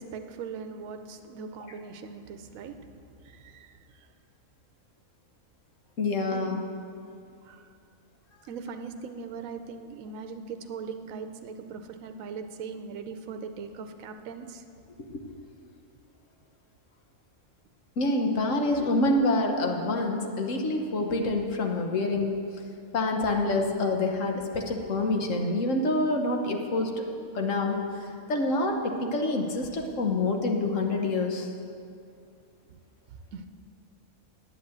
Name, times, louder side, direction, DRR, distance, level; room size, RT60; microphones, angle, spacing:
voice 1, 0.0-4.1 6.3-6.6 7.4-7.7 8.4-14.6 18.7-18.8 32.7-32.8 33.1-33.5, right 5 dB, 75° right, 7 dB, 1.1 m, -40 dB
voice 2, 6.0-6.6 15.0-15.2 18.0-22.4 22.9-27.0 27.3-27.8 28.3-31.5, left 2 dB, 65° left, 3 dB, 1.4 m, -27 dB
9.3 x 8.1 x 7.9 m, 2.5 s
omnidirectional pair, 1.5 m